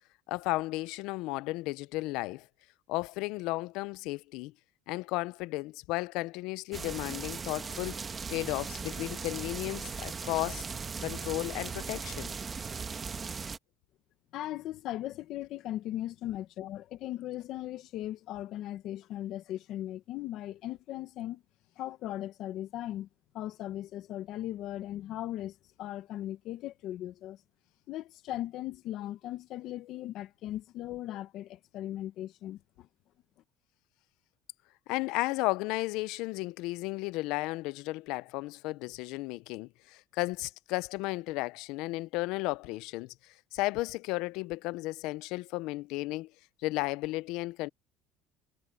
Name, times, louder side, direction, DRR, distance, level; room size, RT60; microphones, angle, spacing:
voice 1, 0.3-2.5 2.9-4.5 4.9-8.0 8.3-10.6 11.0-12.3 34.9-43.1 43.5-46.3 46.6-47.7, left 21 dB, 75° left, 0.5 m, -34 dB
sound 1, 6.7-13.6, right 5 dB, 25° right, 1.3 m, -38 dB
voice 2, 14.3-21.4 21.8-23.1 23.3-27.4 27.9-32.9, left 13 dB, 60° left, 1.4 m, -38 dB
cardioid pair, 130°, 0 cm